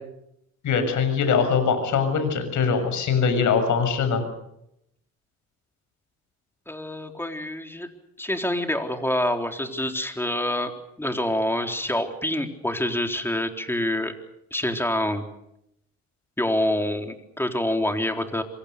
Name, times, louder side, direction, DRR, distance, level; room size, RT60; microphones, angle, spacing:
voice 1, 0.6-4.2, left 6 dB, 75° left, 9 dB, 7.2 m, -22 dB
voice 2, 6.7-7.9 8.2-10.7 11.0-14.1 14.5-15.3 16.4-18.4, left 1 dB, 5° left, 5 dB, 3.9 m, -26 dB
27.5 x 24.0 x 6.8 m, 0.79 s
cardioid pair, 90°, 30 cm